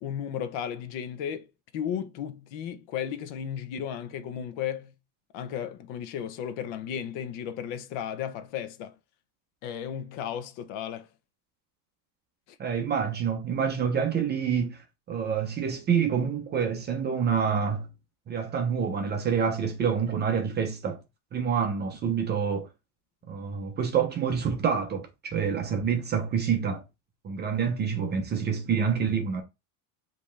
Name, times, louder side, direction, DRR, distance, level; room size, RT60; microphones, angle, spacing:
voice 1, 0.0-1.5 1.7-4.9 5.3-8.9 9.6-11.1 12.5-12.6, left 9 dB, 60° left, 0.9 m, -34 dB
voice 2, 12.6-17.9 18.3-21.0 21.3-22.7 23.3-26.8 27.2-29.4, right 7 dB, 20° right, 0.5 m, -27 dB
5.3 x 2.9 x 3.3 m
cardioid pair, 180°, 50 cm